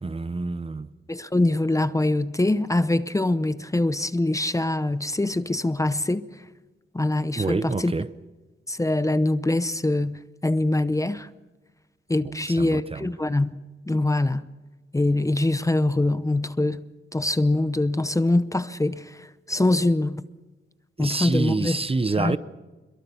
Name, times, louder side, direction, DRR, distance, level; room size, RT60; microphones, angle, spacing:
voice 1, 0.0-0.9 7.4-8.1 12.2-13.1 21.0-22.4, right 3 dB, 30° right, 0.7 m, -27 dB
voice 2, 1.1-6.2 6.9-7.9 8.7-11.3 12.1-13.6 13.9-14.5 14.9-16.8 17.1-20.2 21.0-21.8 22.2-22.4, left 2 dB, 15° left, 0.7 m, -23 dB
27.0 x 22.5 x 7.0 m
wide cardioid pair, 135°, 20 cm